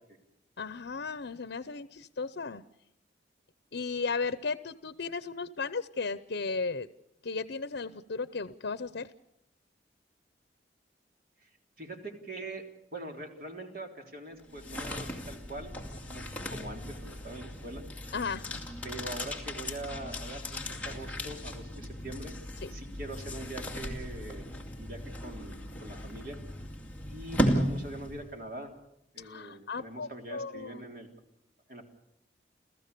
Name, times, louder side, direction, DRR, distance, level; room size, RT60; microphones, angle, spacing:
voice 1, 0.6-2.6 3.7-6.9 7.2-9.1 18.1-18.6 22.6-22.7 29.2-30.8, left 4 dB, 75° left, 14 dB, 0.7 m, -35 dB
voice 2, 11.8-17.9 18.8-22.4 22.7-24.5 24.8-26.4 27.1-28.7 29.1-31.1 31.7-31.8, right 1 dB, 50° right, 3 dB, 3.5 m, -43 dB
sound 1, 14.4-28.4, equal, 10° left, 2.4 m, -36 dB
30.0 x 14.5 x 6.8 m, 0.84 s
head